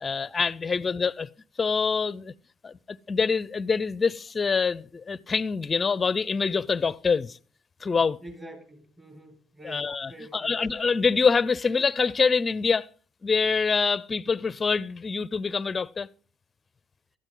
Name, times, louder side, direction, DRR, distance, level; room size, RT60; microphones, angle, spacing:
voice 1, 0.0-1.3 1.6-2.3 2.6-7.4 7.8-8.2 9.6-12.9 13.2-16.1, left 5 dB, 25° left, 0.6 m, -25 dB
voice 2, 0.6-0.9 8.2-10.6, right 1 dB, 20° right, 4.5 m, -46 dB
17.0 x 13.0 x 3.9 m
supercardioid pair, 85°, 0 cm